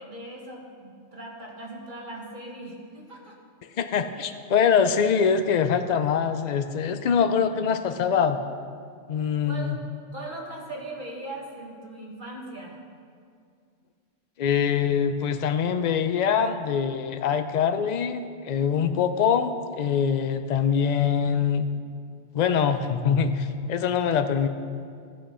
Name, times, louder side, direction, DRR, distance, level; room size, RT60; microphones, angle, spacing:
voice 1, 0.0-3.4 9.1-9.7 10.1-12.8, right 1 dB, 40° right, -1 dB, 1.5 m, -39 dB
voice 2, 3.8-8.4 9.1-9.8 14.4-21.7 22.3-24.5, left 7 dB, 90° left, 9 dB, 0.3 m, -24 dB
14.0 x 6.1 x 5.5 m, 2.2 s
omnidirectional pair, 1.3 m